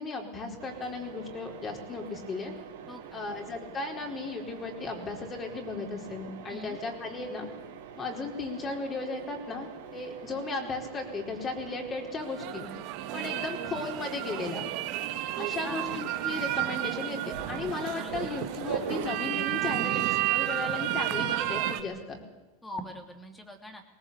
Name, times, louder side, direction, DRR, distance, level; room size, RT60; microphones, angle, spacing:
voice 1, 0.0-2.5 3.1-7.5 8.0-12.7 13.1-14.7 15.4-22.2, left 3 dB, 30° left, 2 dB, 4.7 m, -36 dB
Mechanisms, 0.6-19.1, right 7 dB, 75° right, 3.2 m, -43 dB
voice 2, 2.9-3.3 6.5-6.8 15.3-16.0 17.9-18.2 22.6-23.8, equal, 10° left, 5 dB, 3.0 m, -43 dB
sound 1, 12.2-21.8, right 14 dB, 55° right, 1.5 m, -32 dB
19.5 x 19.0 x 8.4 m, 1.1 s
hypercardioid pair, 100°, 0 cm